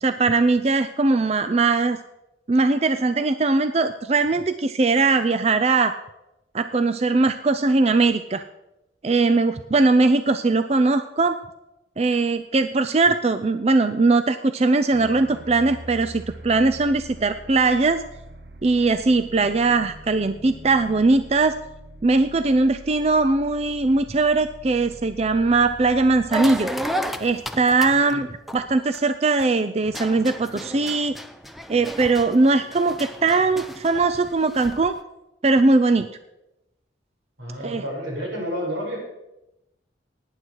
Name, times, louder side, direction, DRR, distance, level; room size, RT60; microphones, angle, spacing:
voice 1, 0.0-2.0 2.5-5.9 6.5-8.4 9.0-11.4 12.0-18.0 18.6-21.6 22.0-26.7 27.2-31.2 31.7-35.0 35.4-36.1 37.6-37.8, right 3 dB, 35° right, 10 dB, 0.5 m, -20 dB
sound 1, 14.9-27.6, right 1 dB, 55° right, 1.0 m, -43 dB
sound 2, 26.3-29.4 29.8-34.9, equal, ahead, 0.7 m, -33 dB
voice 2, 37.4-39.0, equal, 90° right, -1 dB, 5.3 m, -30 dB
18.0 x 9.8 x 4.6 m, 0.92 s
head